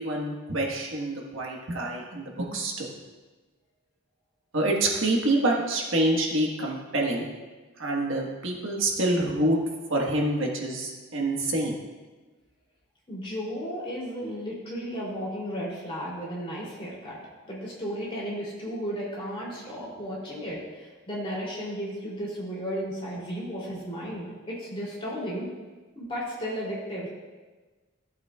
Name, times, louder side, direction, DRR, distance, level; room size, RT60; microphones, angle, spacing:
voice 1, 0.0-2.9 4.5-7.3 7.8-9.6 9.9-11.8, right 1 dB, 70° right, 0 dB, 1.4 m, -26 dB
voice 2, 13.1-17.2 17.4-25.5 25.9-27.1, equal, 25° left, -6 dB, 3.0 m, -34 dB
15.0 x 8.0 x 2.4 m, 1.3 s
head